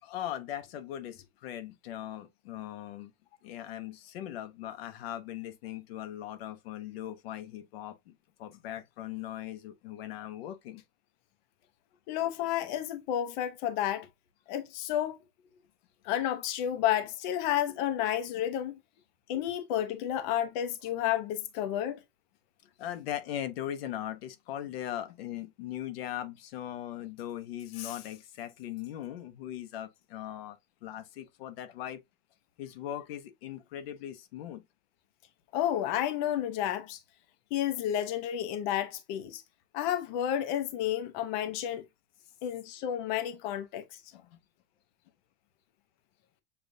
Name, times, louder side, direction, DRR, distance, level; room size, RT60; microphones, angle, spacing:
voice 1, 0.0-3.1 3.4-10.8 19.3-19.4 22.8-32.0 32.6-34.6 44.1-44.4, left 11 dB, 85° left, 0.8 m, -39 dB
voice 2, 12.1-14.1 14.5-15.2 16.0-18.8 19.3-22.0 35.5-37.0 37.5-39.4 39.7-41.8 42.4-43.8, left 11 dB, 50° left, 0.6 m, -31 dB
6.8 x 2.4 x 2.6 m
supercardioid pair, 160°, 29 cm